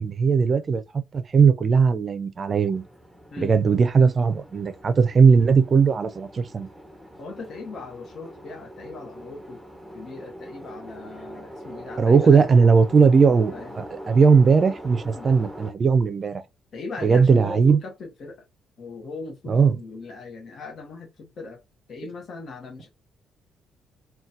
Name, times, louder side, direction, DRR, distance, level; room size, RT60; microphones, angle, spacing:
voice 1, 0.0-2.8 3.4-6.7 12.0-16.4 17.0-17.8 19.5-19.8, right 5 dB, 40° right, 0.4 m, -18 dB
sound 1, 2.7-15.7, equal, ahead, 0.8 m, -42 dB
voice 2, 7.2-9.6 9.9-12.4 13.5-13.7 15.1-15.3 16.7-18.4 18.8-21.6 21.9-22.9, left 3 dB, 55° left, 0.8 m, -39 dB
3.9 x 2.2 x 2.6 m
cardioid pair, 90°, 0 cm